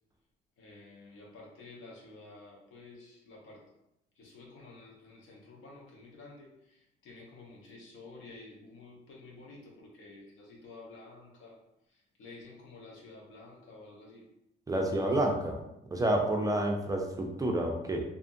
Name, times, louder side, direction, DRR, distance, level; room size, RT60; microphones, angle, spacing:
voice 1, 0.6-3.6 4.2-11.6 11.9-14.2 14.9-15.2, left 3 dB, 85° left, -2 dB, 0.8 m, -51 dB
voice 2, 14.7-15.6 15.9-18.0, right 1 dB, 15° right, 1 dB, 0.4 m, -29 dB
2.5 x 2.3 x 2.6 m, 0.84 s
cardioid pair, 90°, 20 cm